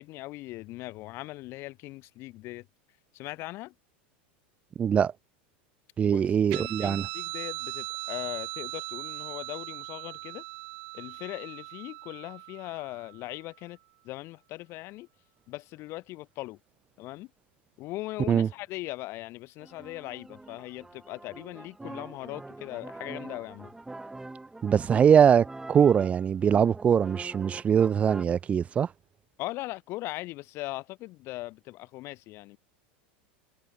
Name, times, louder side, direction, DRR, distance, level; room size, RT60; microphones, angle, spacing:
voice 1, 0.0-2.7 3.1-3.7 6.0-6.2 6.5-10.4 10.9-13.8 14.0-15.1 15.5-16.6 17.0-17.3 17.8-23.7 29.4-32.6, left 19 dB, 50° left, 5.1 m, -39 dB
voice 2, 4.8-5.1 6.0-7.1 18.3-18.5 24.6-28.9, right 8 dB, 25° right, 0.3 m, -22 dB
Guitar, 6.5-13.4, right 31 dB, 65° right, 1.8 m, -39 dB
sound 1, 19.6-28.2, right 2 dB, 10° right, 4.2 m, -44 dB
supercardioid pair, 120°, 6 cm